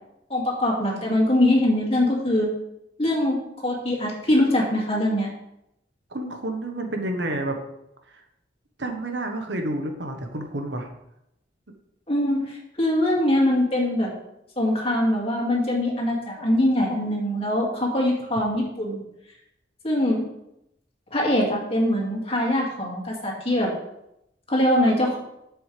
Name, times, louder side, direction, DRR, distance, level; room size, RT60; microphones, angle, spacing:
voice 1, 0.3-2.5 3.0-5.3 12.1-14.1 14.6-19.0 19.8-20.3 21.1-23.7 24.5-25.2, left 1 dB, 30° left, -2 dB, 2.3 m, -22 dB
voice 2, 6.1-7.6 8.1-8.2 8.8-10.9, right 1 dB, 75° right, 4 dB, 1.2 m, -29 dB
11.0 x 7.1 x 3.4 m, 0.83 s
head